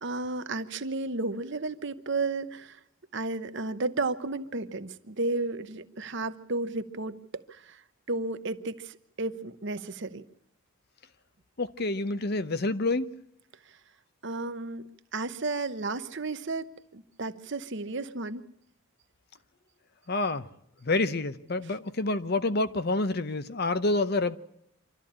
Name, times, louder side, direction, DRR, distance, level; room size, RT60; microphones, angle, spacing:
voice 1, 0.0-2.8 3.1-7.8 8.1-10.2 14.2-16.7 16.9-18.4, right 3 dB, 55° right, 0.9 m, -33 dB
voice 2, 11.6-13.1 20.1-20.5 20.8-24.4, left 2 dB, 45° left, 0.7 m, -28 dB
26.0 x 13.0 x 8.7 m
head